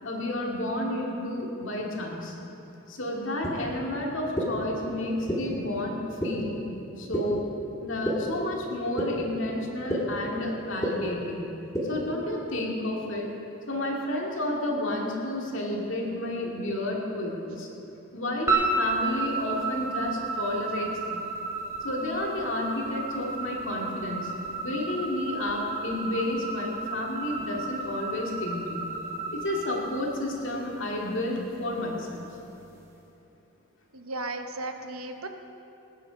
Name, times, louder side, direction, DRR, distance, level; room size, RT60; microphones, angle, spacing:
voice 1, 0.0-2.3 2.9-6.6 7.0-7.4 7.8-11.4 11.8-13.3 13.7-17.7 18.1-21.2 21.8-24.3 24.6-28.8 29.3-32.3, left 1 dB, 60° left, -1 dB, 2.4 m, -31 dB
sound 1, 3.4-3.5 4.4-4.5 5.3-5.4 6.2-6.3 7.1-7.2 8.0-8.1 9.0-9.1 9.9-10.0 10.8-10.9 11.7-11.8, equal, 15° left, 2.2 m, -27 dB
sound 2, 18.5-30.8, right 3 dB, 15° right, 1.6 m, -32 dB
voice 2, 33.9-35.3, right 2 dB, 80° right, 6 dB, 1.1 m, -35 dB
20.0 x 9.9 x 5.2 m, 2.9 s
head